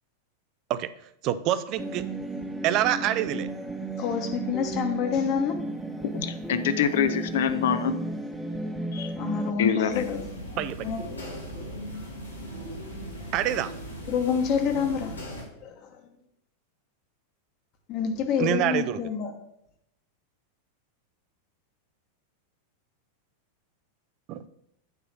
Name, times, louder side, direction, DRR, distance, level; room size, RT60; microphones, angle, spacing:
voice 1, 1.2-2.0 2.6-3.5 10.6-10.8 13.3-13.7 18.4-19.0 24.3-24.4, right 12 dB, 40° right, 14 dB, 0.4 m, -26 dB
sound 1, 1.8-9.5, right 2 dB, 5° right, 0.7 m, -34 dB
voice 2, 4.0-5.6 9.2-11.0 14.1-15.8 17.9-19.3, left 7 dB, 40° left, 5 dB, 1.1 m, -28 dB
voice 3, 6.0-8.0 8.9-9.1 9.6-10.0, left 8 dB, 60° left, 11 dB, 0.5 m, -25 dB
sound 2, 9.9-15.4, equal, 80° left, 1.6 m, -38 dB
8.9 x 3.1 x 5.9 m, 0.75 s
figure-of-eight pair, 90°, 0 cm